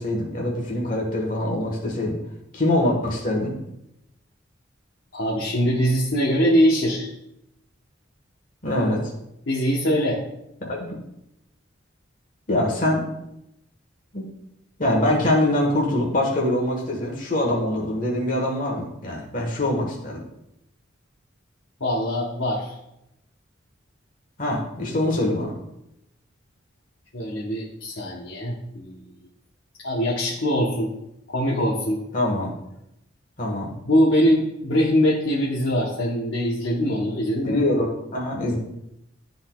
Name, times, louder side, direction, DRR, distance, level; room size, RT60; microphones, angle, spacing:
voice 1, 0.0-2.2 2.5-3.6 8.6-9.0 10.6-10.9 12.5-13.1 14.1-14.3 14.8-20.2 24.4-25.5 32.1-32.5 33.4-33.7 37.4-38.6, left 1 dB, 40° left, -2 dB, 1.3 m, -24 dB
voice 2, 5.1-7.1 9.5-10.2 21.8-22.7 24.9-25.1 27.1-29.0 29.8-30.9 31.3-32.0 33.8-37.6, equal, 70° left, -4 dB, 1.0 m, -22 dB
12.0 x 4.0 x 2.3 m, 0.84 s
head